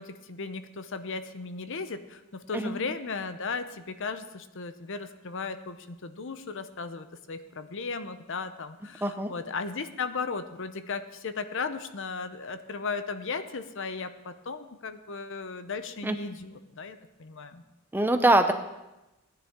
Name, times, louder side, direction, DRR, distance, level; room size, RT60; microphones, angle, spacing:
voice 1, 0.0-17.6, left 4 dB, 60° left, 11 dB, 0.7 m, -36 dB
voice 2, 9.0-9.3 16.0-16.2 17.9-18.5, right 1 dB, 10° right, 7 dB, 0.6 m, -23 dB
17.0 x 10.0 x 3.7 m, 0.97 s
head